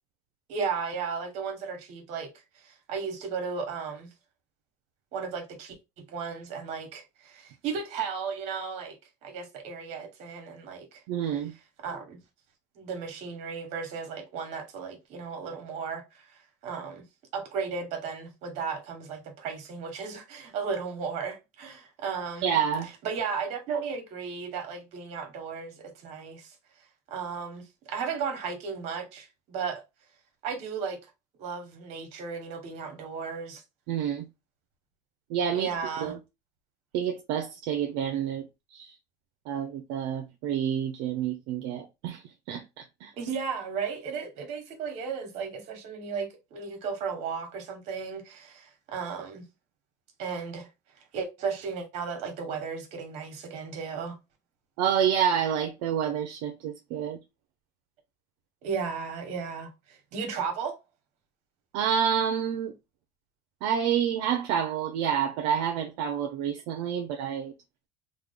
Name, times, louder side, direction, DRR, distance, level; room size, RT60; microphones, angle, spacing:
voice 1, 0.5-2.3 2.6-4.1 5.1-9.0 9.2-11.0 11.8-12.2 12.8-17.0 17.3-22.6 23.0-26.5 27.1-29.8 30.4-31.0 31.4-33.6 35.5-36.1 43.2-49.4 50.2-50.7 51.1-54.2 58.6-60.8, right 5 dB, 65° right, 1.2 m, -35 dB
voice 2, 11.1-11.5 22.4-22.9 33.9-34.2 35.3-35.7 36.0-36.2 36.9-38.9 39.5-43.1 54.8-57.2 61.7-62.7 63.6-67.5, right 8 dB, 80° right, 0.5 m, -28 dB
3.1 x 2.2 x 3.5 m
cardioid pair, 125°, 12 cm